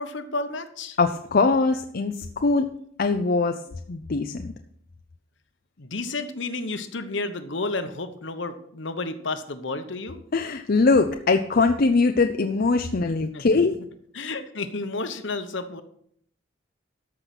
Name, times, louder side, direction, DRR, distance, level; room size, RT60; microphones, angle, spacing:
voice 1, 0.0-1.0 5.8-10.2 13.3-13.7 14.1-15.8, left 3 dB, 65° left, 9 dB, 1.0 m, -31 dB
voice 2, 1.0-2.7 3.0-3.6 3.9-4.5 10.3-13.8, left 3 dB, 50° left, 6 dB, 0.5 m, -22 dB
13.5 x 5.8 x 5.9 m, 0.66 s
head